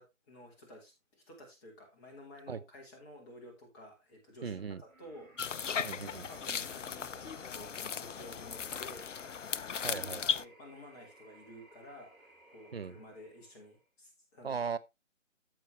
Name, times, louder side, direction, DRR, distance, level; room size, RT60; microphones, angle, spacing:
voice 1, 0.0-5.4 6.3-7.7 8.0-9.1 10.3-14.6, left 1 dB, 15° left, 1.8 m, -52 dB
voice 2, 4.4-4.8 5.8-6.3 9.8-10.3 12.7-13.0 14.4-14.8, right 6 dB, 50° right, 0.6 m, -38 dB
sound 1, 4.8-13.9, right 2 dB, 90° right, 4.1 m, -60 dB
sound 2, 5.4-10.4, left 7 dB, 70° left, 0.5 m, -37 dB
13.5 x 4.8 x 3.2 m
figure-of-eight pair, 150°, 39 cm